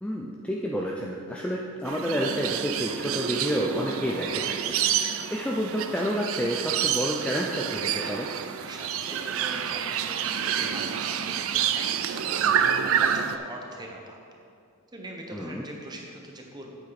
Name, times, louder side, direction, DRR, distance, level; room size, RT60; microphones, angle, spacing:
voice 1, 0.0-4.7 5.3-8.3 15.3-15.6, equal, 5° left, -3 dB, 0.4 m, -29 dB
sound 1, 1.9-13.4, right 8 dB, 65° right, 0.4 m, -28 dB
voice 2, 8.6-14.2 14.9-16.7, right 1 dB, 20° right, 0 dB, 1.0 m, -42 dB
8.3 x 8.3 x 4.1 m, 2.5 s
head